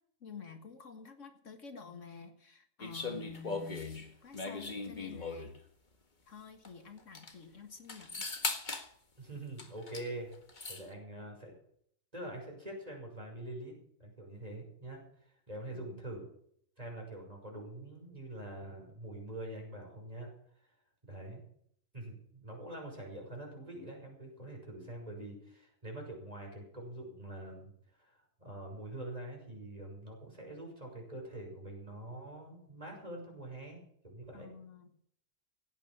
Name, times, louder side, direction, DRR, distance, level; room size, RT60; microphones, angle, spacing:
voice 1, 0.2-5.5 6.3-8.3 15.7-16.0 34.3-35.0, left 5 dB, 65° left, 6 dB, 1.9 m, -49 dB
sound 1, 2.8-5.6 6.6-6.7 7.0-7.3 7.9-8.9 9.6-10.1 10.3-10.8, left 3 dB, 35° left, 1.8 m, -39 dB
voice 2, 9.2-10.3 10.7-11.5 12.1-13.7 14.0-15.0 15.2-16.2 16.8-20.3 21.1-21.4 21.9-27.7 28.0-33.8 34.0-34.5, right 1 dB, 30° right, 0 dB, 6.1 m, -45 dB
17.0 x 9.2 x 7.5 m, 0.67 s
omnidirectional pair, 1.4 m